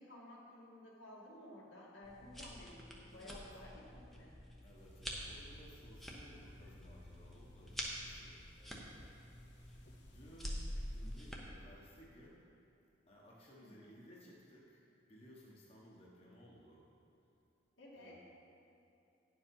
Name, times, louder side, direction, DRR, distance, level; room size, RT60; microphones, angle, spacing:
voice 1, 0.0-4.3 13.6-13.9 17.8-18.2, left 1 dB, 80° left, -4 dB, 2.1 m, -55 dB
sound 1, 2.0-11.4, equal, ahead, 0.9 m, -47 dB
voice 2, 3.0-3.4 4.6-9.6 10.0-12.4 13.1-16.9 17.9-18.2, equal, 30° left, -5 dB, 1.2 m, -60 dB
sound 2, 4.7-11.3, left 2 dB, 60° left, 1.0 m, -61 dB
10.5 x 7.2 x 5.4 m, 2.9 s
head